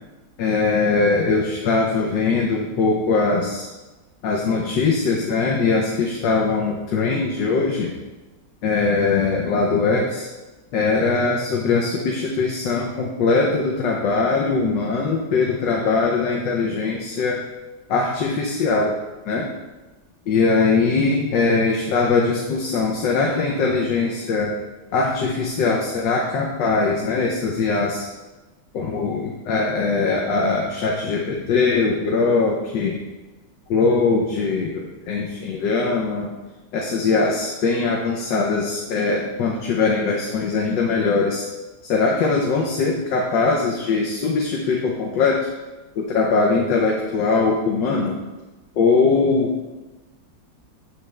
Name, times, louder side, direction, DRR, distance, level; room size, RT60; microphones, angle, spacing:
voice 1, 0.4-3.7 4.2-7.9 8.6-10.3 10.7-17.4 17.9-19.0 19.3-19.5 20.3-24.6 24.9-28.1 28.7-33.0 33.7-36.3 36.7-41.5 41.8-45.5 46.0-48.2 48.8-49.5, left 4 dB, 80° left, 0 dB, 1.5 m, -21 dB
9.9 x 3.4 x 6.3 m, 1.2 s
omnidirectional pair, 2.0 m